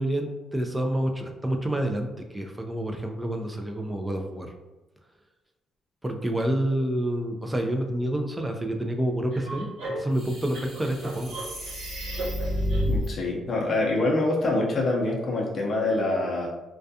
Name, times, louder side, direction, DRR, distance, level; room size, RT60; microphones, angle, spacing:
voice 1, 0.0-4.5 6.0-11.3, right 1 dB, 10° right, 4 dB, 0.4 m, -28 dB
sound 1, 9.3-13.1, equal, 90° right, 1.2 m, -30 dB
voice 2, 12.8-16.5, left 2 dB, 45° left, -3 dB, 0.6 m, -25 dB
2.3 x 2.2 x 2.6 m, 1.1 s
cardioid pair, 90°, 0 cm